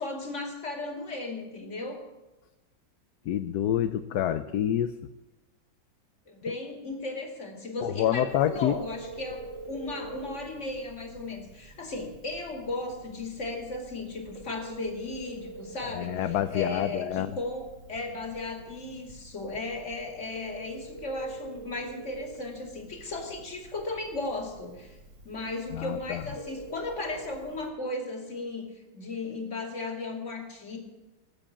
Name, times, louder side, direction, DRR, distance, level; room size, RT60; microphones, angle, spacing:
voice 1, 0.0-2.0 6.3-25.0 25.2-30.8, left 2 dB, 40° left, 3 dB, 2.8 m, -36 dB
voice 2, 3.3-4.9 7.8-8.8 15.9-17.4 25.7-26.2, left 11 dB, 70° left, 10 dB, 1.1 m, -27 dB
Telephone, 8.3-27.7, right 2 dB, 45° right, 2.2 m, -46 dB
20.0 x 7.6 x 8.6 m, 1.1 s
omnidirectional pair, 1.9 m